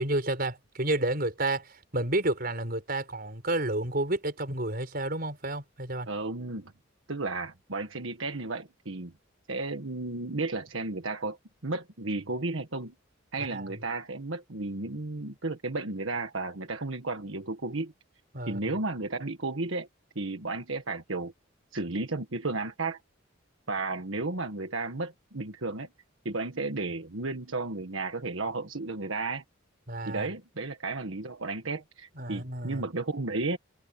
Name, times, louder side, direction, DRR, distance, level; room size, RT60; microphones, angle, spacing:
voice 1, 0.0-6.1 13.4-13.7 18.3-18.6 29.9-30.3 32.2-32.8, right 2 dB, 45° right, 5.3 m, -30 dB
voice 2, 6.1-6.7 7.1-9.1 9.5-11.4 11.6-12.9 13.3-17.9 18.5-19.9 20.1-21.3 21.7-23.0 23.7-25.9 26.2-29.4 30.0-33.6, right 3 dB, 75° right, 1.5 m, -33 dB
head